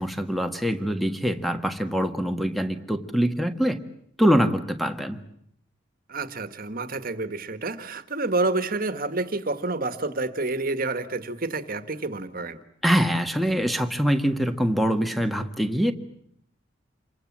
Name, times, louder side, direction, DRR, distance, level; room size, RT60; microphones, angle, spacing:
voice 1, 0.0-3.8 4.2-5.2 12.8-15.9, equal, ahead, 8 dB, 1.6 m, -24 dB
voice 2, 6.1-12.6, right 2 dB, 45° right, 10 dB, 1.7 m, -29 dB
28.0 x 24.0 x 7.5 m, 0.71 s
head